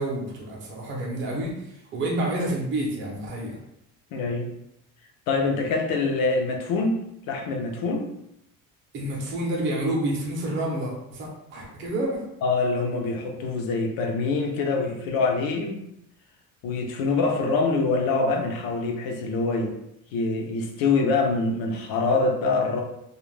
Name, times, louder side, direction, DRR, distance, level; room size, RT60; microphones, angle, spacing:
voice 1, 0.0-3.6 8.9-12.2, right 1 dB, 35° right, -3 dB, 0.6 m, -29 dB
voice 2, 4.1-4.5 5.3-7.0 7.3-8.1 12.4-15.8 16.6-19.7 20.1-22.8, left 3 dB, 70° left, 2 dB, 0.6 m, -25 dB
2.4 x 2.1 x 3.1 m, 0.78 s
cardioid pair, 175°, 36 cm